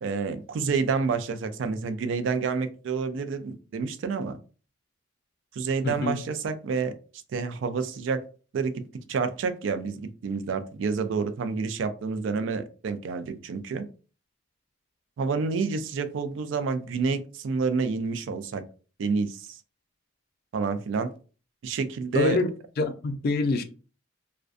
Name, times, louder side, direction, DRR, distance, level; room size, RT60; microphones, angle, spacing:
voice 1, 0.0-4.4 5.5-6.9 7.3-8.2 8.5-8.8 9.1-13.9 15.2-18.6 19.0-19.6 20.5-21.1 21.6-22.4, right 5 dB, 70° right, 0.3 m, -28 dB
voice 2, 5.8-6.2 22.1-22.5 22.8-23.6, left 3 dB, 55° left, 0.3 m, -25 dB
2.4 x 2.1 x 2.4 m
head